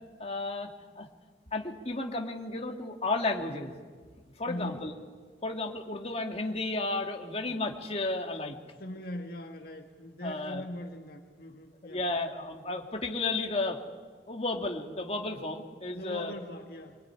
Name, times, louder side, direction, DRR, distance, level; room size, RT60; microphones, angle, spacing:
voice 1, 0.2-1.1 1.5-3.7 4.4-4.9 5.4-8.6 10.2-10.6 11.8-13.8 14.3-16.3, left 2 dB, 35° left, 2 dB, 2.5 m, -33 dB
voice 2, 4.5-4.9 8.8-12.0 15.9-17.1, left 1 dB, 55° left, 2 dB, 1.8 m, -41 dB
25.0 x 24.5 x 9.9 m, 1.5 s
head